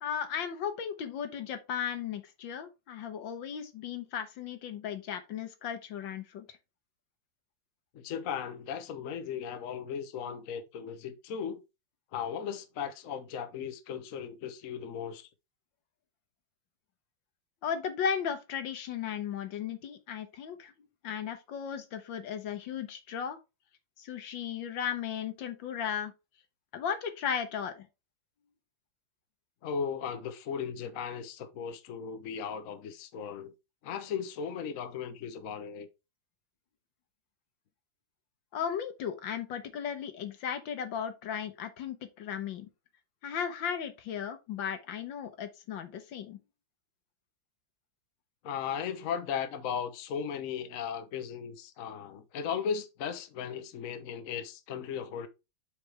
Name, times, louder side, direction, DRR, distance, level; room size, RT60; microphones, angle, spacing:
voice 1, 0.0-6.6 17.6-20.7 21.0-23.4 24.0-26.1 26.7-27.9 38.5-42.7 43.2-46.4, left 8 dB, 75° left, 1.7 m, -36 dB
voice 2, 7.9-11.6 12.1-15.3 29.6-33.5 33.8-35.9 48.4-55.3, left 7 dB, 55° left, 1.0 m, -36 dB
7.7 x 5.1 x 3.3 m
omnidirectional pair, 2.1 m